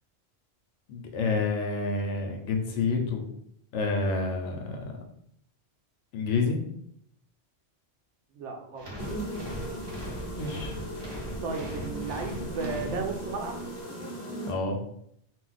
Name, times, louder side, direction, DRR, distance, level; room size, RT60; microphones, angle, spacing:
voice 1, 0.9-3.3 3.7-4.8 6.1-6.6 10.4-10.7 14.5-14.8, left 3 dB, 85° left, 3 dB, 0.9 m, -28 dB
voice 2, 8.3-8.9 11.4-13.6, right 4 dB, 80° right, 3 dB, 0.9 m, -34 dB
sound 1, 8.8-13.5, equal, 30° right, 0.5 m, -39 dB
sound 2, 9.0-14.5, right 1 dB, 60° left, 0.9 m, -37 dB
2.4 x 2.0 x 3.9 m, 0.71 s
omnidirectional pair, 1.2 m